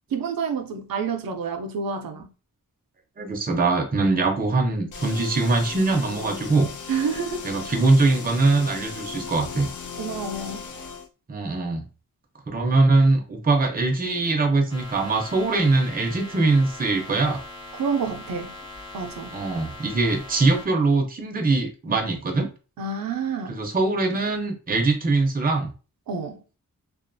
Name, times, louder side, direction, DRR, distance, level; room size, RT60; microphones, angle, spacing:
voice 1, 0.1-2.3 6.9-7.5 10.0-10.7 17.7-18.6 18.9-19.3 22.8-23.6 26.1-26.4, right 5 dB, 80° right, 0.5 m, -28 dB
voice 2, 3.2-6.7 7.4-9.7 11.3-11.8 12.5-17.4 19.3-22.5 23.5-25.7, right 3 dB, 25° right, 0.5 m, -22 dB
sound 1, 4.9-11.1, left 6 dB, 60° left, 0.5 m, -36 dB
sound 2, 14.7-20.7, left 2 dB, 15° left, 0.7 m, -41 dB
2.4 x 2.3 x 2.5 m
wide cardioid pair, 140°, 34 cm